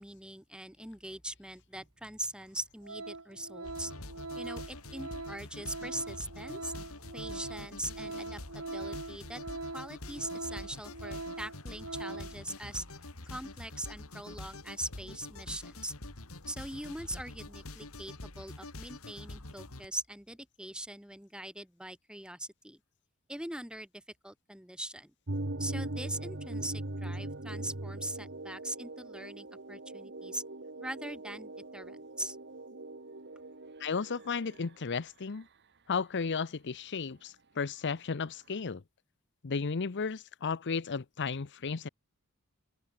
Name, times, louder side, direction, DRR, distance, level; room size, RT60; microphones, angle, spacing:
voice 1, 0.0-3.9 4.4-6.7 7.1-9.4 9.7-12.9 13.3-15.9 16.5-22.8 23.3-25.1 25.6-30.4 30.8-32.4, right 1 dB, 5° right, 3.6 m, -42 dB
Organ, 1.8-1.9 2.4-2.6 2.8-12.4 12.7-12.9, right 2 dB, 75° right, 5.7 m, -42 dB
sound 1, 3.6-19.9, left 2 dB, 75° left, 2.7 m, -46 dB
sound 2, 25.3-34.7, right 2 dB, 50° right, 2.0 m, -40 dB
voice 2, 33.8-35.5 35.9-38.8 39.4-41.9, left 5 dB, 55° left, 0.7 m, -34 dB
head